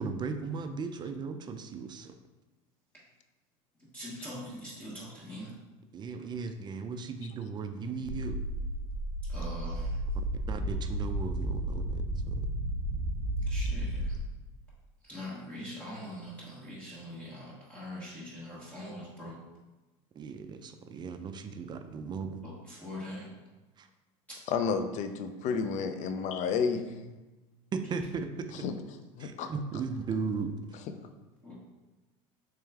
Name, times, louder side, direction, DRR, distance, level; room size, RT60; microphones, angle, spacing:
voice 1, 0.0-2.1 5.9-8.4 10.5-12.3 20.1-22.4 23.8-23.9 27.7-28.5 29.2-30.5, right 5 dB, 25° right, 8 dB, 0.4 m, -36 dB
voice 2, 3.9-5.5 9.3-10.0 13.5-14.2 15.0-19.4 22.4-23.3 31.4-31.5, left 1 dB, 10° left, -9 dB, 1.2 m, -42 dB
sound 1, 8.0-14.2, right 1 dB, 60° right, 0.7 m, -33 dB
voice 3, 24.5-27.1 28.6-28.7 29.2-29.5, left 5 dB, 45° left, 8 dB, 0.4 m, -31 dB
3.3 x 3.0 x 3.5 m, 1.2 s
supercardioid pair, 100°, 17 cm